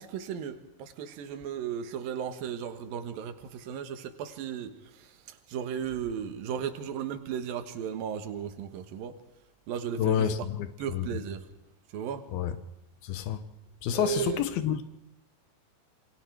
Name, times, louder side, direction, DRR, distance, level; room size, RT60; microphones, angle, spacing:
voice 1, 0.0-9.2 9.7-10.5 10.8-11.4 11.9-12.3 13.9-14.5, right 8 dB, 75° right, 3.2 m, -35 dB
voice 2, 10.0-10.7 10.9-11.0 12.3-12.5 13.0-13.4 13.8-14.8, left 9 dB, 90° left, 3.1 m, -28 dB
28.0 x 22.0 x 4.6 m
omnidirectional pair, 4.2 m